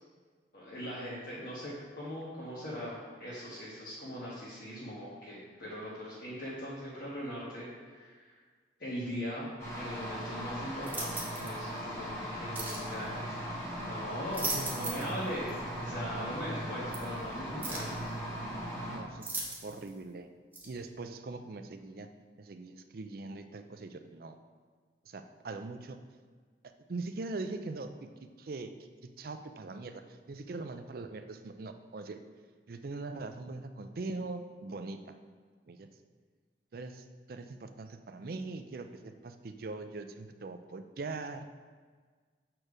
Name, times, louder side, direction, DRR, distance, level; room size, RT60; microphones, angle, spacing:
voice 1, 0.5-8.4 8.8-9.5 9.7-13.4 13.7-18.1, equal, 55° left, -9 dB, 1.3 m, -40 dB
sound 1, 9.6-19.0, equal, 15° left, 1.7 m, -38 dB
sound 2, 10.8-11.6 12.5-12.9 14.1-15.2 15.5-15.6 16.9-17.0 17.6-18.0 19.2-19.9 20.5-20.7, right 2 dB, 10° right, 1.1 m, -37 dB
voice 2, 14.5-15.2 18.9-20.3 20.6-22.1 22.4-24.4 25.1-26.0 26.9-28.1 28.4-28.7 29.2-32.2 32.7-35.2 35.7-35.9 36.7-41.5, right 3 dB, 55° right, 8 dB, 0.4 m, -41 dB
6.5 x 4.5 x 4.9 m, 1.5 s
head